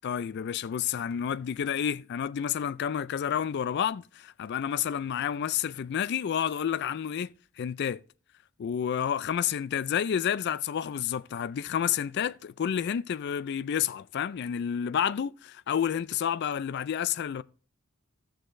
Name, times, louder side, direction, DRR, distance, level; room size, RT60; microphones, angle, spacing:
voice 1, 0.0-7.3 7.6-8.0 8.6-17.4, left 8 dB, 50° left, 0.3 m, -30 dB
16.5 x 6.4 x 2.6 m
head